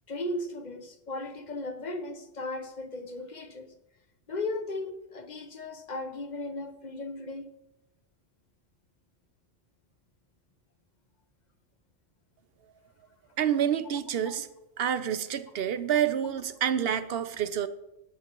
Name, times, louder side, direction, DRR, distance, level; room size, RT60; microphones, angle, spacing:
voice 1, 0.1-3.7 4.3-7.5 14.3-14.4, left 2 dB, 40° left, 0.9 m, -36 dB
voice 2, 13.4-14.5 14.8-17.7, right 9 dB, 60° right, 0.9 m, -28 dB
18.5 x 7.9 x 3.0 m
omnidirectional pair, 1.2 m